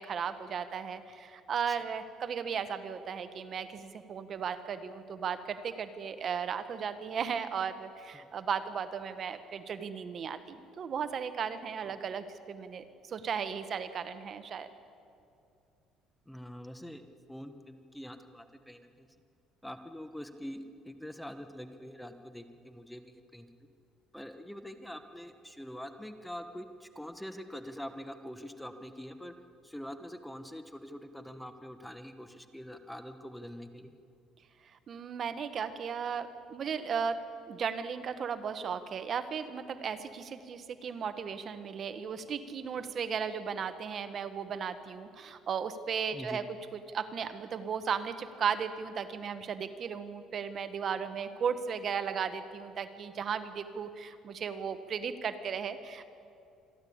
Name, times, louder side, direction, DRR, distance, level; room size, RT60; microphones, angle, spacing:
voice 1, 0.0-14.7 34.9-37.2 37.5-46.4 46.7-56.1, right 7 dB, 45° right, 11 dB, 1.1 m, -36 dB
voice 2, 16.3-17.0 17.3-19.1 19.6-23.5 24.1-29.3 29.6-33.9 46.1-46.4, equal, 5° left, 9 dB, 1.2 m, -44 dB
27.0 x 11.5 x 8.6 m, 2.5 s
cardioid pair, 120°, 0 cm